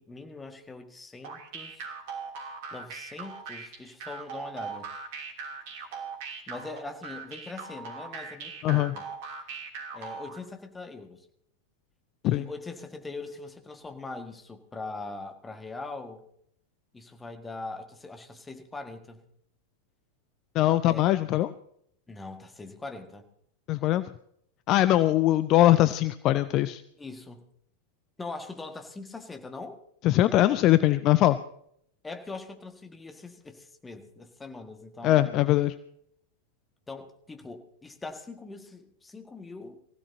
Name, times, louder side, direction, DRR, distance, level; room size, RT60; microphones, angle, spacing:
voice 1, 0.0-1.9 2.7-4.9 6.5-9.1 9.9-11.3 12.2-16.2 16.9-19.2 20.8-21.1 22.1-23.2 27.0-27.5 28.2-29.8 32.0-35.5 36.9-39.8, left 3 dB, 10° left, 5 dB, 1.8 m, -41 dB
sound 1, 1.2-10.4, right 5 dB, 50° right, 2.9 m, -40 dB
voice 2, 20.5-21.5 23.7-24.1 24.7-26.8 30.0-31.4 35.0-35.7, left 14 dB, 35° left, 14 dB, 0.5 m, -22 dB
24.0 x 15.5 x 2.8 m, 0.69 s
figure-of-eight pair, 90°, 0 cm